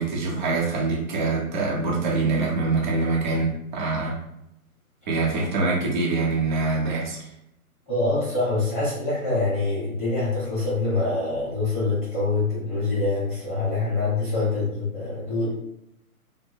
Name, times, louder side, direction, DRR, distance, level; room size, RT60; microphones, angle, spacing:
voice 1, 0.0-4.2 5.1-7.2, right 3 dB, 30° right, -4 dB, 0.8 m, -24 dB
voice 2, 7.9-15.5, left 3 dB, 10° left, -14 dB, 0.5 m, -25 dB
2.1 x 2.1 x 3.6 m, 0.81 s
hypercardioid pair, 145°, 45 cm